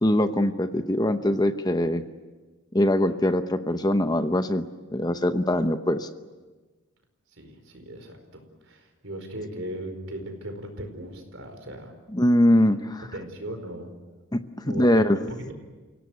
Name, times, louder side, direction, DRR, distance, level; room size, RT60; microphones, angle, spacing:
voice 1, 0.0-2.0 2.7-4.7 4.9-6.1 12.1-13.0 14.3-15.2, left 1 dB, 20° left, 9 dB, 0.8 m, -22 dB
voice 2, 7.4-11.9 13.1-13.9 14.7-15.5, right 1 dB, 65° right, 6 dB, 4.9 m, -37 dB
29.5 x 17.5 x 9.5 m, 1.3 s
head